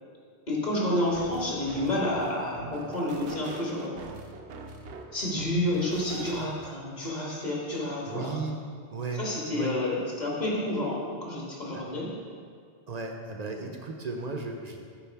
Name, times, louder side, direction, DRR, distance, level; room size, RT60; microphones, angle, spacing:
voice 1, 0.5-4.0 5.1-8.4 9.1-12.1 13.6-13.7, left 1 dB, 45° left, -4 dB, 1.6 m, -30 dB
sound 1, 1.1-6.7, right 4 dB, 90° right, 0.9 m, -43 dB
voice 2, 8.1-8.6 8.9-9.3 9.5-9.8 11.7-11.8 12.9-14.8, right 4 dB, 50° right, 2 dB, 0.6 m, -35 dB
6.9 x 4.8 x 4.5 m, 2.1 s
omnidirectional pair, 1.1 m